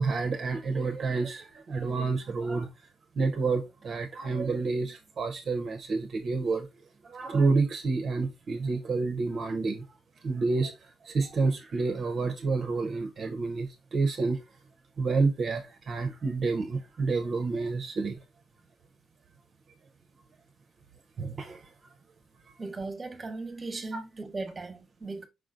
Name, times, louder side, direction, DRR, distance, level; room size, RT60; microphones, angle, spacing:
voice 1, 0.0-2.7 3.2-6.7 7.0-9.9 10.2-14.4 15.0-18.2 21.2-21.9, right 4 dB, 50° right, 0.6 m, -29 dB
voice 2, 22.6-25.3, right 3 dB, 25° right, 1.0 m, -37 dB
4.9 x 3.8 x 2.5 m
cardioid pair, 90°, 0 cm